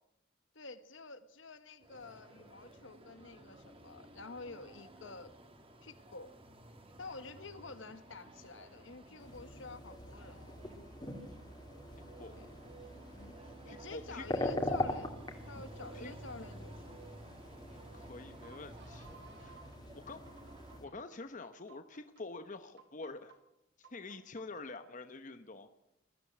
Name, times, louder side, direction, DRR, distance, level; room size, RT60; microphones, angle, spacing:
voice 1, 0.5-5.3 5.8-6.3 7.0-10.6 12.4-12.5 13.1-13.3 13.6-15.1 15.5-17.0 20.1-20.2, left 3 dB, 65° left, 12 dB, 1.4 m, -49 dB
sound 1, 1.8-20.8, right 1 dB, 25° right, 2.6 m, -55 dB
sound 2, 9.2-20.8, left 1 dB, 20° left, 2.7 m, -42 dB
sound 3, 10.8-19.8 20.3-20.9 21.4-22.2 22.8-23.4 23.8-24.6, right 5 dB, 55° right, 3.6 m, -59 dB
voice 2, 13.7-14.5 15.9-16.1 17.7-19.1 19.4-19.6 19.9-20.3 20.8-23.4 23.8-25.7, left 3 dB, 40° left, 9 dB, 0.9 m, -47 dB
21.0 x 14.5 x 8.6 m, 0.88 s
head